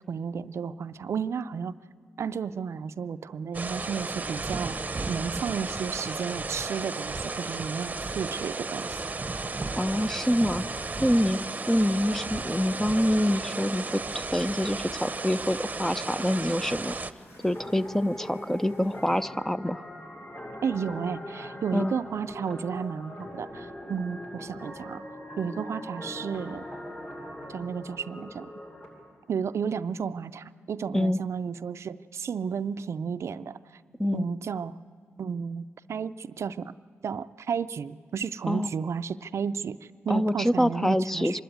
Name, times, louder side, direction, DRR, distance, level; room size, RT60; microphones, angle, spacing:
voice 1, 0.1-1.7 2.2-9.0 20.6-25.0 25.4-26.6 27.5-28.5 29.3-33.6 34.1-34.7 35.2-36.7 37.0-41.4, right 6 dB, 70° right, 13 dB, 0.4 m, -32 dB
sound 1, 3.5-17.1, right 3 dB, 30° right, 0.8 m, -34 dB
sound 2, 9.3-19.3, left 1 dB, 75° left, 3.6 m, -54 dB
voice 2, 9.7-10.6 11.0-11.4 11.7-16.9 17.4-19.8 21.7-21.9 30.9-31.2 34.0-34.3 38.5-38.7 40.1-41.4, equal, 5° left, 13 dB, 0.5 m, -26 dB
sound 3, 17.5-28.9, left 1 dB, 45° left, 7.3 m, -41 dB
24.5 x 12.5 x 9.4 m, 2.1 s
cardioid pair, 65°, 5 cm